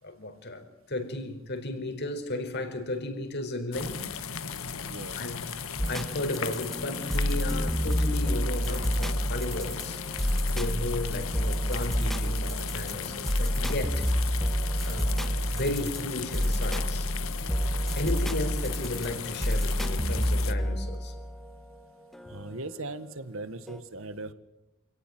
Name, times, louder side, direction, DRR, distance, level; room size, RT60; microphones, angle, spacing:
voice 1, 0.0-4.1 5.2-5.4 5.9-10.2 10.5-14.1 14.8-17.1 17.9-21.1, left 2 dB, 50° left, 4.4 m, -34 dB
sound 1, 3.7-20.5, left 6 dB, 75° left, 1.5 m, -37 dB
voice 2, 4.8-5.2 22.3-24.3, right 2 dB, 65° right, 1.6 m, -38 dB
sound 2, 5.8-22.8 23.7-23.8, equal, ahead, 1.6 m, -29 dB
28.0 x 17.5 x 9.3 m
head